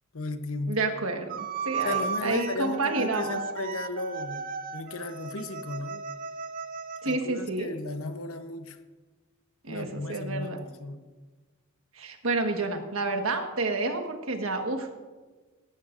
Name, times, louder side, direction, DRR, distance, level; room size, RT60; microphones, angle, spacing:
voice 1, 0.1-0.8 1.8-4.4 4.7-6.0 7.0-8.8 9.7-11.0, left 2 dB, 80° left, 9 dB, 1.0 m, -35 dB
voice 2, 0.7-3.4 7.0-7.7 9.6-10.6 12.0-15.0, right 3 dB, 70° right, 4 dB, 1.5 m, -29 dB
sound 1, 1.3-7.2, right 5 dB, 40° right, 0.6 m, -35 dB
18.0 x 14.5 x 2.6 m, 1.3 s
head